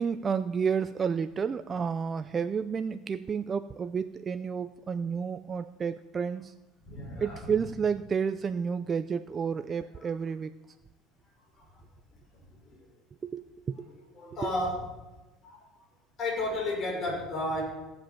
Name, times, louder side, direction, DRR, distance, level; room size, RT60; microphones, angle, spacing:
voice 1, 0.0-6.5 7.2-10.5 13.2-13.9 14.4-14.5, right 6 dB, 30° right, 11 dB, 0.4 m, -31 dB
voice 2, 6.9-7.5 10.0-10.1 12.6-12.8 13.9-14.8 15.4-15.6 16.2-17.6, left 1 dB, 35° left, -2 dB, 5.9 m, -32 dB
16.5 x 7.8 x 7.1 m, 1.1 s
supercardioid pair, 120°, 0 cm